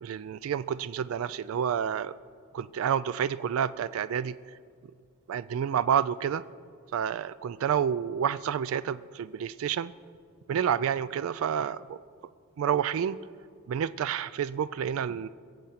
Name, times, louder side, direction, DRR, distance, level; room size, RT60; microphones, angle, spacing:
voice 1, 0.0-2.1 2.5-4.5 5.3-6.4 6.9-9.9 10.5-12.0 12.6-13.2 13.7-15.3, right 8 dB, 75° right, 15 dB, 0.3 m, -29 dB
22.0 x 7.7 x 5.8 m, 2.3 s
head